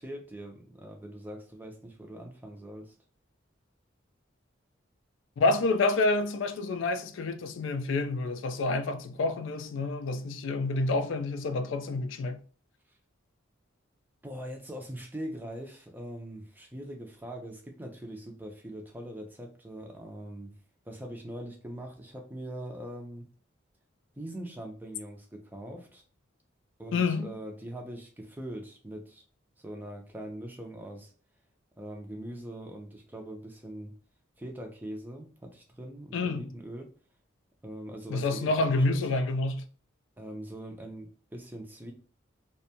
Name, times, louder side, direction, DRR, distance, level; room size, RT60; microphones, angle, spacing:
voice 1, 0.0-2.9 14.2-20.5 20.9-23.3 24.2-26.0 26.8-29.2 29.6-31.1 31.8-34.0 34.4-36.9 37.6-39.0 40.2-41.9, right 1 dB, 10° right, 0.4 m, -42 dB
voice 2, 5.4-12.4 26.9-27.3 36.1-36.5 38.1-39.7, left 3 dB, 70° left, 0.3 m, -28 dB
2.6 x 2.2 x 2.7 m
head